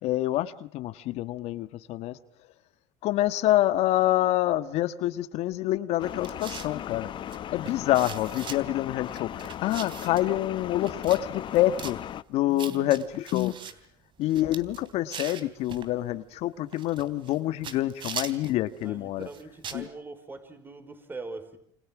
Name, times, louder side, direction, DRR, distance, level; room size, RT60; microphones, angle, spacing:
voice 1, 0.0-2.2 3.0-7.1 7.5-12.0 12.3-13.5 14.2-19.3 19.7-19.8, left 14 dB, 65° left, 12 dB, 1.5 m, -27 dB
sound 1, 6.0-12.2, left 10 dB, 45° left, 1.0 m, -37 dB
sound 2, 6.2-6.8 7.3-7.4 7.7-8.6 9.1-10.3 10.8-11.2 11.5-12.0 12.6-13.7 14.2-15.9 16.7-17.4 17.6-18.6 19.2-19.8, right 7 dB, 45° right, 3.3 m, -40 dB
voice 2, 12.4-13.1 18.8-21.6, right 3 dB, 15° right, 11 dB, 5.1 m, -42 dB
28.5 x 27.0 x 6.1 m, 0.63 s
supercardioid pair, 110°, 12 cm